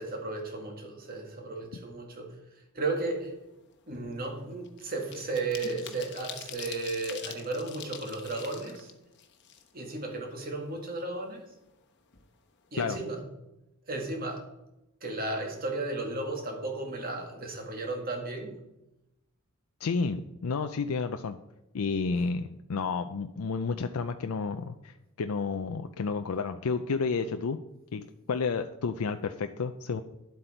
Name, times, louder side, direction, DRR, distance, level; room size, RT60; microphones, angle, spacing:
voice 1, 0.0-3.3 3.9-8.9 9.7-11.4 12.7-13.2 13.9-14.5 15.0-18.6, right 2 dB, 40° right, 2 dB, 2.1 m, -34 dB
sound 1, 3.1-3.3 3.6-10.1 10.4-10.5 10.8-11.8 12.1-12.3 12.6-12.9, left 9 dB, 55° left, 1.1 m, -45 dB
voice 2, 19.8-21.4 21.7-27.6 27.9-30.0, left 4 dB, 80° left, 8 dB, 0.5 m, -31 dB
11.0 x 7.8 x 4.4 m, 0.93 s
head